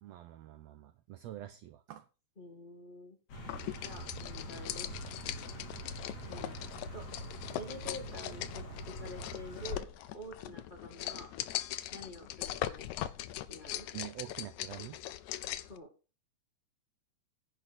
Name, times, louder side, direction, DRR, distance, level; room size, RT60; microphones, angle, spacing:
voice 1, 0.0-2.1 13.9-15.0, right 13 dB, 75° right, 9 dB, 1.7 m, -46 dB
voice 2, 2.4-3.2 3.8-4.9 6.2-6.6 6.9-7.0 7.6-9.9 10.1-11.3 11.9-12.9 13.5-13.9 15.6-15.9, left 1 dB, 20° left, 0 dB, 1.5 m, -47 dB
sound 1, 3.3-9.8, right 1 dB, 60° left, 3.8 m, -44 dB
sound 2, 3.5-15.8, left 13 dB, 75° left, 2.0 m, -41 dB
10.5 x 4.6 x 7.9 m, 0.33 s
omnidirectional pair, 3.6 m